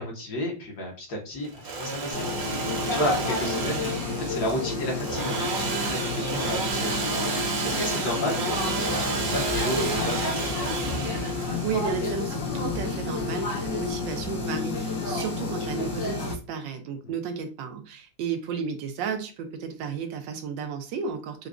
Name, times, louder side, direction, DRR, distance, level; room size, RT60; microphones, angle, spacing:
voice 1, 0.0-3.9 4.2-7.0 7.6-10.5 15.0-15.1, left 1 dB, 60° left, 0 dB, 1.3 m, -32 dB
Engine / Sawing, 1.4-13.1, right 4 dB, 65° right, 1.0 m, -31 dB
sound 1, 2.1-16.3, left 3 dB, 80° left, 2.0 m, -31 dB
sound 2, 8.6-14.4, left 2 dB, 10° right, 0.7 m, -40 dB
voice 2, 11.6-21.5, right 6 dB, 80° right, 6 dB, 1.3 m, -33 dB
4.8 x 2.2 x 2.4 m, 0.34 s
omnidirectional pair, 2.0 m